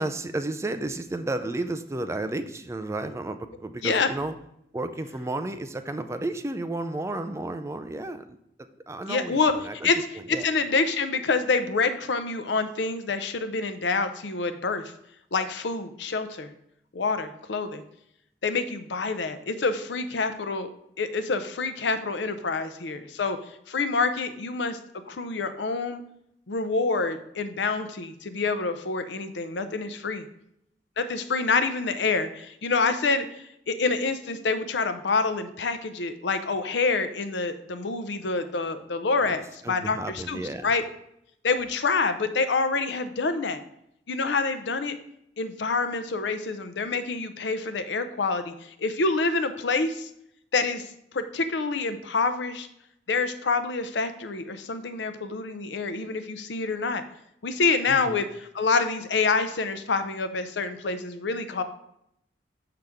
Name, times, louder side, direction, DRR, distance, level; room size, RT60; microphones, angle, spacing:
voice 1, 0.0-4.3 4.7-9.9 10.3-10.5 39.2-39.3 39.6-40.7 57.9-58.2, right 2 dB, 15° right, 9 dB, 0.4 m, -32 dB
voice 2, 9.1-9.5 9.8-10.0 10.3-14.8 15.3-16.5 16.9-17.8 18.4-20.7 21.0-23.4 23.7-24.8 25.1-26.0 26.5-30.2 31.0-33.3 33.7-40.8 41.4-43.6 44.1-45.0 45.4-50.1 50.5-52.7 53.1-57.0 57.4-61.6, left 4 dB, 85° left, 10 dB, 0.6 m, -27 dB
6.6 x 5.8 x 3.5 m, 0.77 s
head